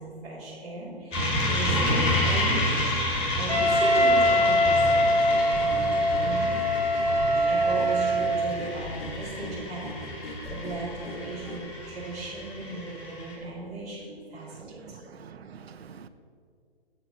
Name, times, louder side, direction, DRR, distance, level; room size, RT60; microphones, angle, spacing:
voice 1, 0.0-2.7 3.3-6.5 7.5-15.1, right 2 dB, ahead, -14 dB, 0.3 m, -36 dB
sound 1, 1.1-13.4, left 1 dB, 15° left, 1.1 m, -30 dB
Wind instrument woodwind instrument, 3.5-8.5, equal, 85° left, 1.6 m, -23 dB
sound 2, 5.1-11.7, left 1 dB, 65° left, 1.3 m, -40 dB
voice 2, 14.6-16.1, right 7 dB, 75° right, 11 dB, 0.5 m, -47 dB
8.1 x 3.9 x 5.5 m, 2.2 s
figure-of-eight pair, 135°, 32 cm